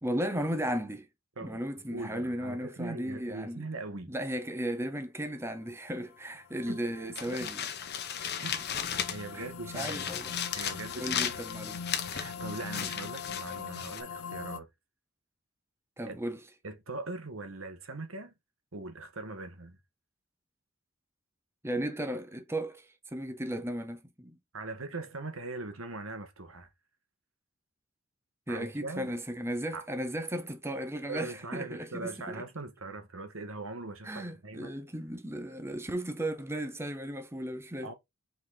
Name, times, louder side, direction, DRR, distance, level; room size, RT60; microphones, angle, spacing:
voice 1, 0.0-1.1 1.4-3.6 4.1-7.6 9.3-9.5 9.7-10.4 10.9-11.9 12.8-12.9 16.0-16.4 21.6-24.4 28.5-32.4 34.0-37.9, right 1 dB, 10° right, 1.0 m, -35 dB
voice 2, 1.9-4.1 6.7-6.8 7.3-7.5 8.4-8.6 9.1-10.1 10.6-11.4 12.0-14.7 16.1-16.2 16.6-18.3 18.7-19.8 24.5-26.7 28.5-29.1 29.7-29.8 31.1-34.7 37.8-37.9, right 2 dB, 80° right, 1.6 m, -41 dB
sound 1, 6.1-14.6, left 6 dB, 75° left, 0.6 m, -43 dB
sound 2, 7.1-9.4 9.7-14.0, left 8 dB, 50° left, 1.1 m, -36 dB
5.5 x 4.2 x 4.1 m
head